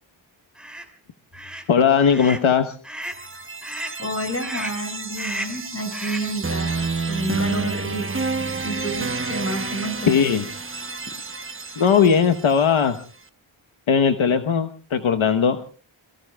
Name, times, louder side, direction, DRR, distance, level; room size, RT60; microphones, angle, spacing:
sound 1, 0.6-0.9 1.3-1.7 2.1-2.5 2.8-3.2 3.6-4.0 4.4-4.8 5.2-5.6 5.9-6.3, right 1 dB, ahead, 2.9 m, -33 dB
voice 1, 1.7-2.8 10.1-10.4 11.8-13.0 13.9-15.6, left 7 dB, 70° left, 7 dB, 1.1 m, -18 dB
sound 2, 3.0-13.0, right 4 dB, 25° right, 0.9 m, -30 dB
voice 2, 4.0-8.2 8.6-10.2, right 1 dB, 30° left, 5 dB, 5.9 m, -30 dB
26.5 x 23.0 x 2.3 m, 0.38 s
wide cardioid pair, 105°, 50 cm